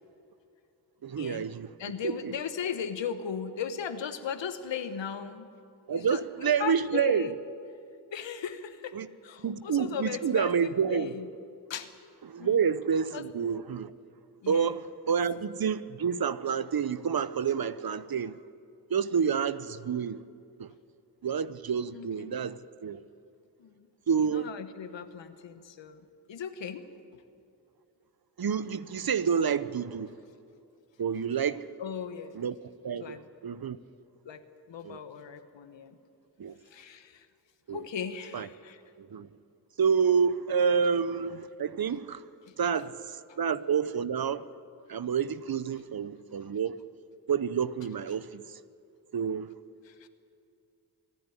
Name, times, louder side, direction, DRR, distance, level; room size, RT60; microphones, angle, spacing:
voice 1, 1.0-1.7 2.0-2.3 5.9-7.3 8.9-9.1 9.4-11.1 12.2-13.9 14.5-18.4 18.9-20.2 20.6-20.7 21.2-23.0 24.1-24.5 28.4-30.1 31.0-31.7 32.3-32.5 32.8-33.2 33.4-33.8 34.8-35.0 36.4-36.5 37.7-37.8 38.3-38.5 39.0-39.3 39.8-42.3 42.6-44.4 44.9-46.8 47.3-48.6 49.1-49.5, right 7 dB, 55° right, 0.9 m, -28 dB
voice 2, 1.8-5.5 5.9-7.4 8.1-9.0 9.2-11.3 11.7-11.9 12.4-12.6 13.1-13.3 14.4-14.8 21.9-22.4 23.6-23.9 24.2-27.2 31.8-32.4 33.0-33.2 34.2-36.0 36.6-37.3 37.7-38.8 42.5-42.6 43.3-43.4 49.8-50.1, left 7 dB, 85° left, 1.2 m, -37 dB
25.0 x 11.5 x 9.9 m
cardioid pair, 40°, 43 cm